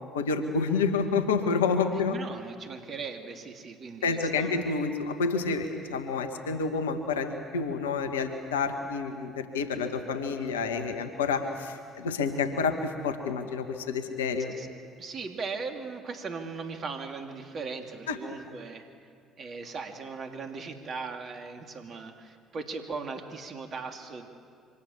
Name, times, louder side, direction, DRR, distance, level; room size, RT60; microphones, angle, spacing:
voice 1, 0.0-2.1 4.0-14.5 18.1-18.2, left 5 dB, 85° left, 7 dB, 1.6 m, -29 dB
voice 2, 2.0-4.5 14.6-14.7 15.0-18.9 19.4-24.3, right 4 dB, 50° right, 4 dB, 2.8 m, -38 dB
27.5 x 25.5 x 7.3 m, 2.2 s
hypercardioid pair, 55°, 0 cm